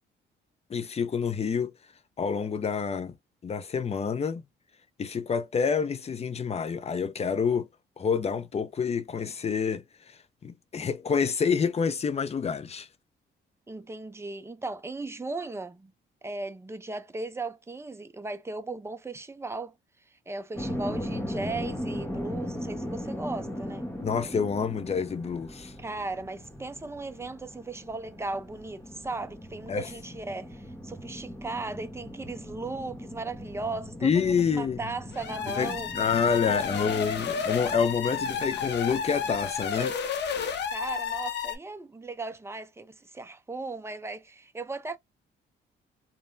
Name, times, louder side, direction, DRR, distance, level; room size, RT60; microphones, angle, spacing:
voice 1, 0.7-1.7 2.2-3.1 3.4-4.4 5.0-7.7 8.0-12.9 24.0-25.7 29.7-29.9 34.0-34.8 35.6-40.0, left 6 dB, 30° left, 0.5 m, -28 dB
voice 2, 13.7-15.9 16.2-19.7 20.3-23.9 25.8-35.9 36.5-37.4 40.7-45.0, right 3 dB, 15° right, 0.6 m, -37 dB
sound 1, 20.5-39.5, equal, 10° left, 1.1 m, -39 dB
sound 2, 35.1-41.6, left 7 dB, 60° left, 0.8 m, -31 dB
3.3 x 2.2 x 2.6 m
cardioid pair, 90°, 20 cm